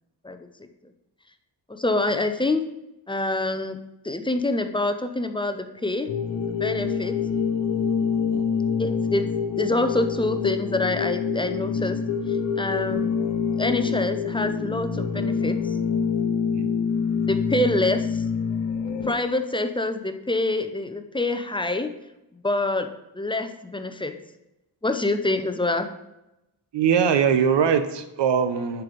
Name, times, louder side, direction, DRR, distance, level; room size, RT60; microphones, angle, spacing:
voice 1, 0.2-0.7 1.7-2.6 3.1-3.8 4.0-6.1 6.4-7.1 8.8-9.3 9.6-12.0 12.6-13.1 13.6-15.8 17.3-18.2 19.1-21.9 22.4-22.9 23.1-24.1 24.8-25.9, left 2 dB, 10° left, 8 dB, 0.6 m, -26 dB
sound 1, 6.1-19.1, left 6 dB, 85° left, 0.9 m, -26 dB
voice 2, 26.7-28.8, right 7 dB, 75° right, 10 dB, 0.9 m, -21 dB
9.6 x 4.7 x 5.2 m, 0.93 s
wide cardioid pair, 110°, 44 cm